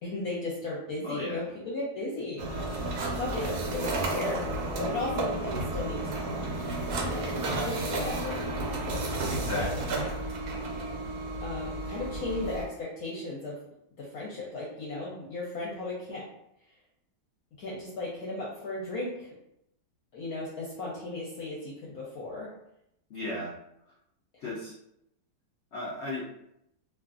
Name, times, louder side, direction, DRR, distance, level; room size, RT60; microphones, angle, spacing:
voice 1, 0.0-2.5 3.0-4.5 4.8-6.2 6.6-6.8 7.0-7.3 7.6-8.4 8.9-9.2 9.5-9.7 11.4-13.6 14.0-16.2 17.6-19.3 20.1-22.5, left 2 dB, 65° left, -5 dB, 1.0 m, -36 dB
voice 2, 1.0-1.4 9.2-9.9 23.1-23.5 24.4-24.7 25.7-26.2, left 1 dB, 85° left, -6 dB, 0.5 m, -35 dB
sound 1, 2.4-12.7, right 2 dB, 70° right, 0.8 m, -32 dB
2.7 x 2.4 x 2.4 m, 0.80 s
omnidirectional pair, 1.9 m